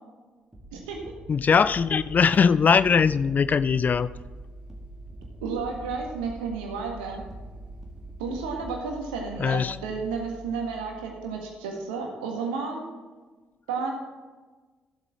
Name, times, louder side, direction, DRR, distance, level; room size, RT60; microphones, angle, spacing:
sound 1, 0.5-8.9, right 2 dB, 10° right, 2.1 m, -47 dB
voice 1, 1.3-4.1 9.4-9.8, left 6 dB, 35° left, 16 dB, 0.4 m, -21 dB
sound 2, 1.6-11.6, right 1 dB, 25° right, 2.3 m, -45 dB
voice 2, 5.4-7.2 8.2-12.8 13.7-13.9, right 5 dB, 70° right, 1 dB, 1.7 m, -32 dB
14.0 x 8.1 x 3.7 m, 1.3 s
figure-of-eight pair, 45°, 5 cm